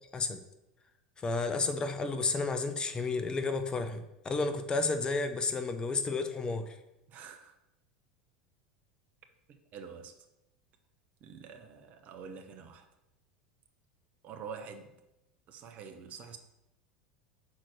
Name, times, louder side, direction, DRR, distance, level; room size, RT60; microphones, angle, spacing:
voice 1, 1.2-6.8, left 3 dB, 20° left, 0.6 m, -32 dB
voice 2, 7.1-7.5 9.5-10.1 11.2-12.9 14.2-15.0 15.5-16.4, right 6 dB, 40° right, 0.9 m, -46 dB
5.8 x 4.4 x 6.2 m
figure-of-eight pair, 75°, 4 cm